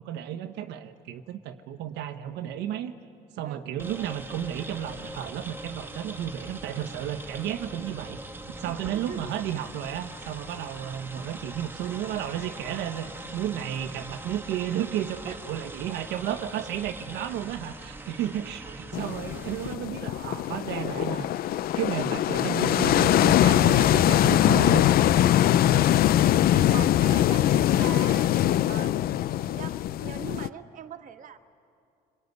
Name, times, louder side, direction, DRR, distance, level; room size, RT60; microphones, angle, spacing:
voice 1, 0.0-2.9 3.4-8.2 8.6-21.3 21.7-24.9 25.2-25.4 25.7-26.1 26.4-26.7 27.1-27.2, right 10 dB, 85° right, 7 dB, 1.2 m, -33 dB
sound 1, 3.8-19.7, right 2 dB, 15° right, 1.7 m, -41 dB
voice 2, 8.5-9.2 15.2-15.4 18.6-18.8 25.7-25.8 26.7-31.4, right 8 dB, 50° right, 7 dB, 1.5 m, -41 dB
sound 2, 18.9-30.5, left 12 dB, 65° left, 0.5 m, -22 dB
25.0 x 23.0 x 9.5 m, 2.4 s
cardioid pair, 110°, 17 cm